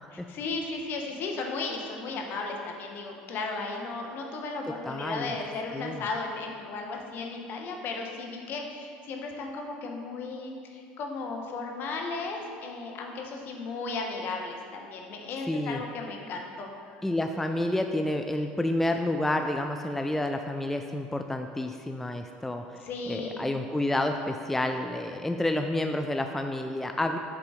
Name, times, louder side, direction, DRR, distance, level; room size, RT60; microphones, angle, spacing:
voice 1, 0.1-16.7 22.8-23.4, left 3 dB, 55° left, 1 dB, 1.0 m, -35 dB
voice 2, 4.9-5.3 5.7-6.0 15.5-15.8 17.0-27.2, left 1 dB, 5° left, 5 dB, 0.3 m, -29 dB
7.0 x 3.8 x 4.8 m, 2.3 s
hypercardioid pair, 80°, 4 cm